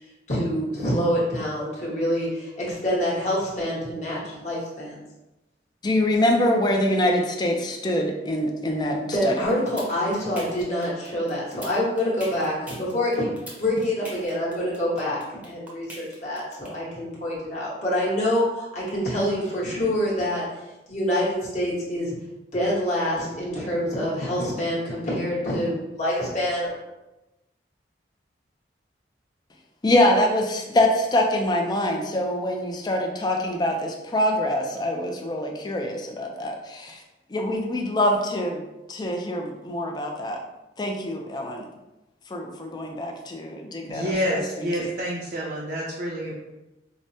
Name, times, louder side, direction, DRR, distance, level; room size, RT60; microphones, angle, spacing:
voice 1, 0.3-5.0 9.0-13.3 13.6-15.2 15.4-20.4 20.9-22.1 22.5-26.8, equal, 40° left, -6 dB, 1.2 m, -26 dB
voice 2, 5.8-9.4 29.8-37.0 37.3-38.6 38.9-40.4 40.8-41.7 42.3-44.0 44.3-44.4 44.7-44.8, left 1 dB, 25° left, 2 dB, 0.4 m, -24 dB
sound 1, 9.4-16.7, equal, 10° right, 0.7 m, -40 dB
voice 3, 43.8-46.3, equal, 55° right, -4 dB, 0.5 m, -28 dB
4.8 x 2.1 x 2.7 m, 1.0 s
head